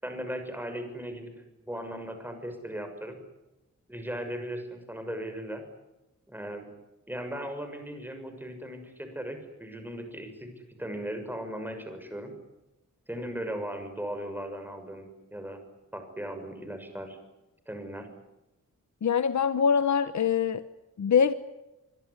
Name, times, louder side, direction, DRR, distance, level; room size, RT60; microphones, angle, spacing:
voice 1, 0.0-1.3 1.6-3.2 3.9-5.6 6.3-6.7 7.1-10.5 10.8-12.3 13.1-15.6 15.9-17.2 17.7-18.1, equal, 5° right, 6 dB, 6.7 m, -37 dB
voice 2, 19.0-20.6 21.0-21.3, left 7 dB, 65° left, 12 dB, 1.2 m, -23 dB
25.5 x 22.5 x 9.8 m, 0.98 s
wide cardioid pair, 125°, 31 cm